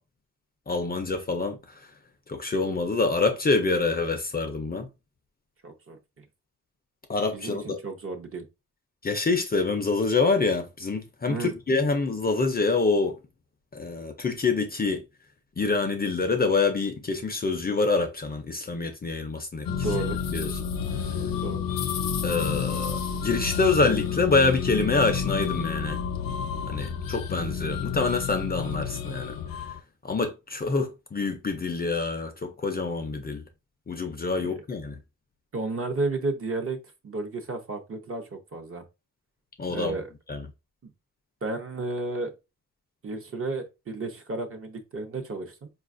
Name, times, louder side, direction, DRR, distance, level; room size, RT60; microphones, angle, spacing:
voice 1, 0.7-1.9 2.3-4.9 7.1-7.8 9.0-13.2 13.7-15.0 15.6-19.9 20.3-20.7 21.1-21.2 22.2-26.0 26.7-29.7 30.0-33.4 33.9-35.0 39.6-39.9 40.3-40.5, left 3 dB, 30° left, 0.4 m, -26 dB
voice 2, 5.6-6.0 7.3-8.4 11.3-11.5 19.7-20.2 21.4-21.7 34.4-34.5 35.5-36.8 37.0-38.8 39.7-40.1 40.8-40.9 41.4-42.3 43.0-45.7, right 3 dB, 45° right, 0.6 m, -32 dB
sound 1, 19.7-29.8, left 7 dB, 85° left, 0.5 m, -30 dB
4.6 x 2.3 x 2.5 m
wide cardioid pair, 165°, 33 cm